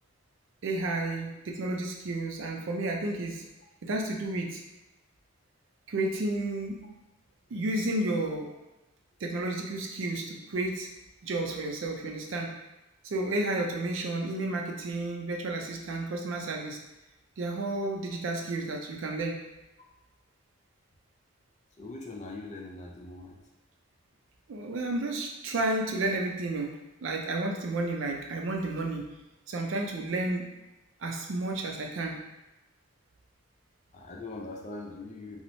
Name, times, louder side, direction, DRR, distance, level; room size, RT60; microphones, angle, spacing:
voice 1, 0.6-3.4 3.8-4.6 5.9-6.8 7.5-8.5 9.2-10.9 11.2-12.5 13.0-16.8 17.4-19.4 24.5-26.7 27.0-29.1 29.5-30.5 31.0-32.2, right 2 dB, 65° right, 1 dB, 0.4 m, -31 dB
voice 2, 21.8-23.4 33.9-35.4, left 2 dB, 35° left, 0 dB, 0.3 m, -41 dB
2.9 x 2.0 x 2.6 m, 1.0 s
head